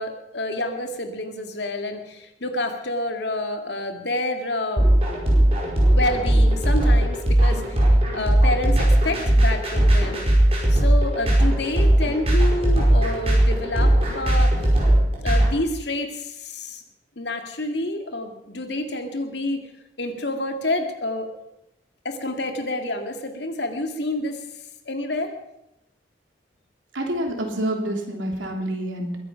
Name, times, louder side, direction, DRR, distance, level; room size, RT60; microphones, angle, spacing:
voice 1, 0.0-4.9 5.9-7.8 8.1-10.3 10.7-14.5 15.2-16.8 17.2-19.7 20.0-21.3 22.0-24.4 24.9-25.3, left 2 dB, 65° left, 5 dB, 2.1 m, -28 dB
sound 1, 4.8-15.5, right 1 dB, 30° right, 4.9 m, -18 dB
voice 2, 26.9-29.2, right 1 dB, 90° right, 2 dB, 3.3 m, -27 dB
22.0 x 10.0 x 5.7 m, 0.88 s
head